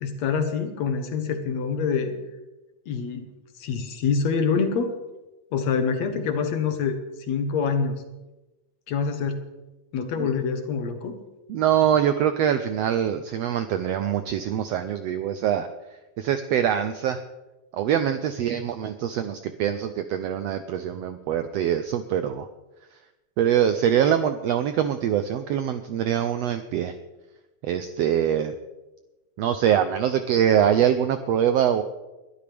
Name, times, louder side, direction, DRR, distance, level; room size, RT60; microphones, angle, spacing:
voice 1, 0.0-2.1 2.9-3.2 3.6-4.9 5.5-7.0 7.3-8.0 8.9-9.4 9.9-11.2, left 5 dB, 65° left, 7 dB, 2.3 m, -25 dB
voice 2, 11.5-15.7 16.2-17.2 17.7-22.5 23.4-26.9 27.6-28.5 29.4-31.8, right 9 dB, 80° right, 9 dB, 1.4 m, -23 dB
21.5 x 12.0 x 3.4 m, 1.1 s
omnidirectional pair, 3.6 m